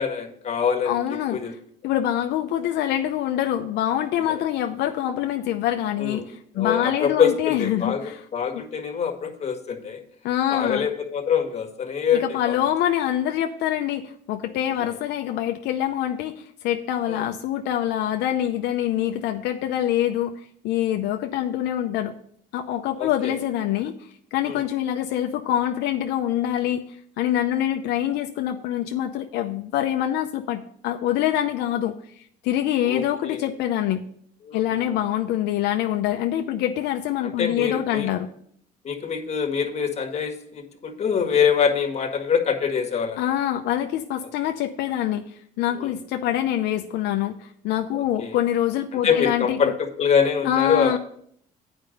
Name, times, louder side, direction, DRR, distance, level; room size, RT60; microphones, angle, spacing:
voice 1, 0.0-1.0 1.3-1.5 4.3-4.4 6.0-6.2 6.6-7.3 7.6-10.0 10.5-12.6 14.8-14.9 17.1-17.2 23.0-23.4 24.5-24.6 32.8-33.4 34.4-34.6 37.2-38.1 38.8-43.2 45.8-45.9 47.9-48.4 48.9-51.0, left 7 dB, 40° left, 4 dB, 1.6 m, -24 dB
voice 2, 0.8-1.4 1.8-8.2 10.2-10.9 12.2-20.3 20.6-22.1 22.5-26.8 27.2-34.0 34.5-38.3 43.2-49.6 50.4-51.0, left 11 dB, 85° left, 5 dB, 0.6 m, -25 dB
8.8 x 5.2 x 6.6 m, 0.64 s
cardioid pair, 110°, 17 cm